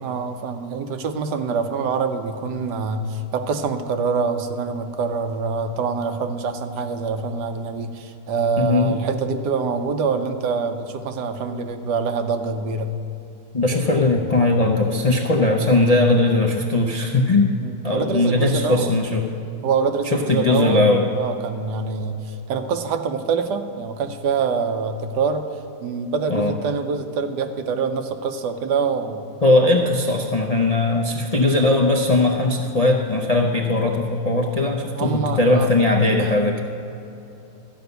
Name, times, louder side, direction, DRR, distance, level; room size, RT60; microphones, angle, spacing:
voice 1, 0.0-12.9 16.0-16.1 17.6-18.9 19.6-20.9 21.2-25.5 25.8-29.3 29.8-29.9 34.9-35.7 36.2-36.3, right 5 dB, 80° right, 7 dB, 1.3 m, -25 dB
voice 2, 8.6-9.0 13.5-17.5 17.8-19.3 20.0-21.1 26.3-26.5 29.4-36.6, left 2 dB, 60° left, 1 dB, 0.4 m, -19 dB
13.0 x 5.5 x 8.0 m, 2.8 s
omnidirectional pair, 1.8 m